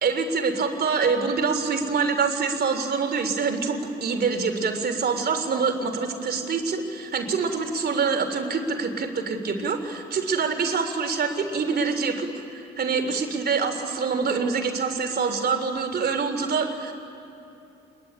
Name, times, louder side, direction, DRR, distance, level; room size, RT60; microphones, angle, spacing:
voice 1, 0.0-16.9, right 5 dB, 55° right, 5 dB, 3.5 m, -25 dB
26.0 x 21.5 x 10.0 m, 2.8 s
cardioid pair, 90°, 20 cm